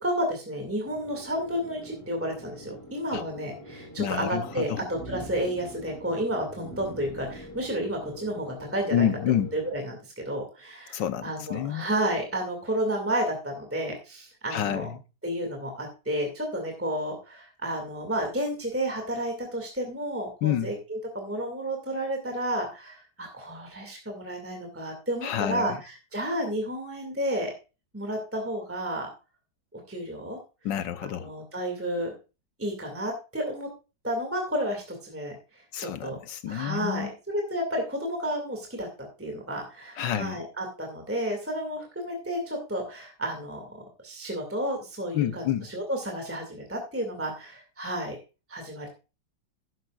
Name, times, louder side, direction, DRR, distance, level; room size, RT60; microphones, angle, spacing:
voice 1, 0.0-9.1 9.5-14.9 15.2-27.5 27.9-29.1 29.7-30.4 31.0-32.1 32.6-33.7 34.0-36.2 36.5-48.2 48.5-48.9, equal, 5° right, 2.2 m, -31 dB
sound 1, 0.8-9.7, equal, 10° left, 3.0 m, -44 dB
voice 2, 4.0-4.8 8.9-9.5 10.9-11.9 14.5-15.0 20.4-20.7 25.2-25.8 30.6-31.3 35.7-37.1 40.0-40.4 45.1-45.7, left 10 dB, 75° left, 1.5 m, -28 dB
13.0 x 10.5 x 2.5 m
omnidirectional pair, 2.0 m